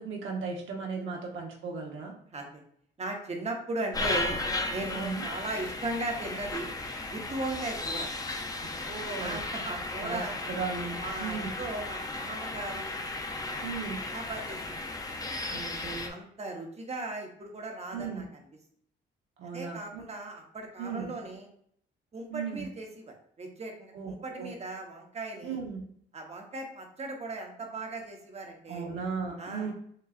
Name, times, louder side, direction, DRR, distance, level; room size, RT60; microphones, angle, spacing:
voice 1, 0.0-2.1 4.9-5.2 8.6-9.4 10.0-10.2 10.5-11.6 13.6-14.0 15.5-16.2 17.9-18.2 19.4-20.0 20.8-21.1 22.3-22.7 23.9-24.5 25.4-25.8 28.7-29.7, right 5 dB, 75° right, 0 dB, 1.0 m, -36 dB
voice 2, 2.3-2.6 3.0-4.4 4.7-6.7 7.1-8.1 9.2-10.4 11.0-12.9 13.5-13.6 14.0-14.8 15.2-15.4 16.0-18.4 19.4-21.5 22.1-25.6 26.1-28.9 29.4-29.7, right 2 dB, 35° right, 2 dB, 1.0 m, -37 dB
sound 1, 3.9-16.1, left 2 dB, 20° left, 0.6 m, -35 dB
6.4 x 2.3 x 2.5 m, 0.66 s
cardioid pair, 90°, 20 cm